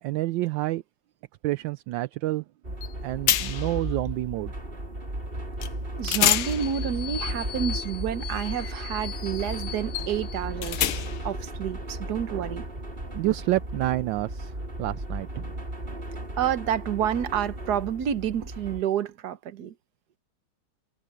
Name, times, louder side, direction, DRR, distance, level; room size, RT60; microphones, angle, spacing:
voice 1, 0.0-0.8 1.4-2.4 3.0-4.5 13.1-15.5, right 16 dB, 75° right, 1.2 m, -28 dB
sound 1, 2.6-18.8, right 1 dB, 25° right, 5.0 m, -35 dB
sound 2, 2.8-2.9 3.3-3.8 5.6-5.7 6.0-11.3, left 12 dB, 80° left, 1.7 m, -29 dB
voice 2, 5.9-12.6 16.4-19.7, right 9 dB, 55° right, 1.4 m, -29 dB
omnidirectional pair, 2.3 m